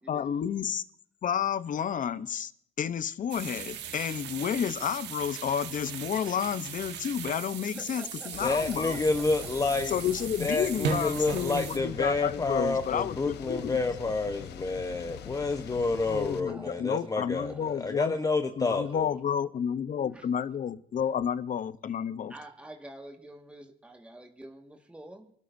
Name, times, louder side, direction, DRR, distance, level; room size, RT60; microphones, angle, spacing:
voice 1, 0.1-0.8 1.2-2.5 2.8-9.0 9.9-13.8 16.1-18.1 18.6-22.3, left 8 dB, 50° left, 14 dB, 0.8 m, -31 dB
sound 1, 3.3-11.8, right 8 dB, 80° right, 1.4 m, -38 dB
voice 2, 7.8-8.5 16.4-17.1 17.5-17.9 20.1-20.2 22.3-25.3, right 1 dB, 5° right, 2 dB, 1.7 m, -47 dB
sound 2, 8.3-16.4, left 10 dB, 70° left, 1.0 m, -43 dB
voice 3, 8.4-9.9 10.4-19.1, left 3 dB, 20° left, 6 dB, 1.0 m, -29 dB
29.0 x 12.5 x 2.7 m, 0.65 s
cardioid pair, 105°, 18 cm